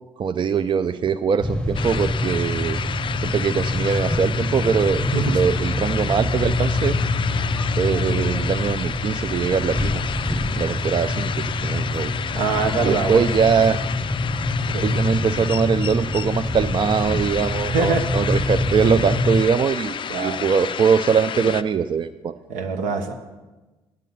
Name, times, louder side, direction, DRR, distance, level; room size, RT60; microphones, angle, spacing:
voice 1, 0.2-2.8 3.2-5.0 5.3-7.0 7.8-10.0 10.5-12.1 12.8-13.8 14.8-22.3, right 6 dB, 40° right, 9 dB, 0.5 m, -22 dB
sound 1, 1.4-19.4, left 2 dB, 5° left, 0.8 m, -25 dB
sound 2, 1.7-21.6, left 7 dB, 40° left, 0.4 m, -31 dB
voice 2, 12.3-13.2 14.7-14.9 17.7-18.0 20.1-20.5 22.5-23.1, right 4 dB, 75° right, 5 dB, 1.0 m, -23 dB
9.1 x 8.4 x 5.5 m, 1.2 s
hypercardioid pair, 50°, 13 cm